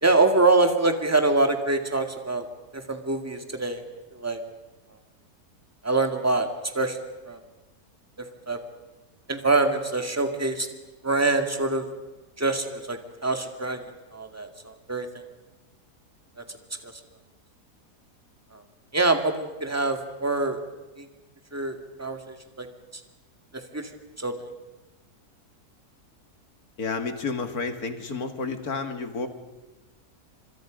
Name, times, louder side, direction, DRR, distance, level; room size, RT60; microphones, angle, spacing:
voice 1, 0.0-2.5 2.7-3.8 4.1-4.4 5.8-6.5 6.7-7.0 7.2-7.4 8.2-8.6 9.3-10.7 11.0-11.9 12.4-15.2 16.4-16.5 16.8-16.9 18.5-18.6 18.9-20.6 21.0-21.1 21.5-22.7 23.5-23.9 24.2-24.5, right 3 dB, 10° right, 5 dB, 2.1 m, -25 dB
voice 2, 26.8-29.3, left 4 dB, 70° left, 7 dB, 2.5 m, -30 dB
30.0 x 26.5 x 5.2 m, 1.1 s
omnidirectional pair, 1.7 m